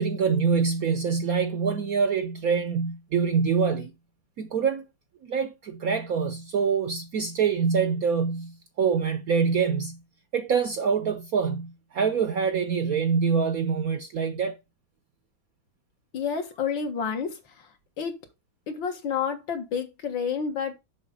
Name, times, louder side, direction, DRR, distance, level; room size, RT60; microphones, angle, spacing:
voice 1, 0.0-3.9 4.4-4.8 5.2-10.0 10.3-14.6, right 6 dB, 65° right, 0.9 m, -25 dB
voice 2, 16.1-17.7 18.0-18.2 18.7-20.7, left 6 dB, 70° left, 2.2 m, -29 dB
7.0 x 5.6 x 5.1 m
omnidirectional pair, 2.2 m